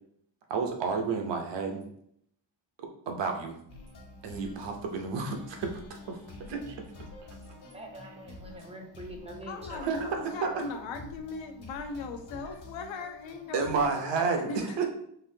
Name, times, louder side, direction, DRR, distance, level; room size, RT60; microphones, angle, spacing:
voice 1, 0.5-1.9 3.1-3.6 4.2-6.8 9.7-10.5 13.5-14.9, right 5 dB, 65° right, 4 dB, 0.8 m, -31 dB
sound 1, 3.7-14.2, left 2 dB, 55° left, 1.1 m, -48 dB
voice 2, 7.5-10.7, right 1 dB, 15° right, 2 dB, 0.5 m, -44 dB
voice 3, 9.5-14.8, left 3 dB, 70° left, 5 dB, 0.6 m, -39 dB
4.0 x 2.6 x 2.7 m, 0.71 s
cardioid pair, 130°, 46 cm